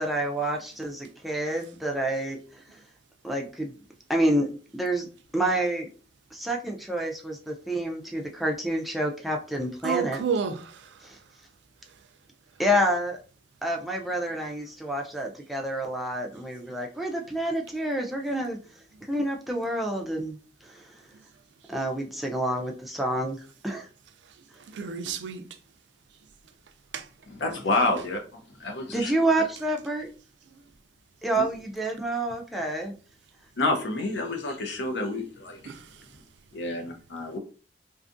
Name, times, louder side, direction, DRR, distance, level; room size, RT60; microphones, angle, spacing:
voice 1, 0.0-2.6 3.2-3.7 4.1-5.1 5.3-5.9 6.3-10.2 11.0-11.2 12.6-13.2 13.6-18.6 19.1-21.0 21.7-23.9 28.9-30.1 31.2-32.9, right 1 dB, ahead, 0.3 m, -28 dB
voice 2, 9.8-11.2 11.9-12.0 24.2-25.5 26.9-27.1 30.5-30.6 35.6-36.2, right 6 dB, 75° right, 0.4 m, -32 dB
voice 3, 27.4-28.2 28.8-29.1 31.4-31.5 33.6-35.6 36.5-37.4, left 2 dB, 70° left, 0.5 m, -28 dB
2.5 x 2.3 x 2.5 m
head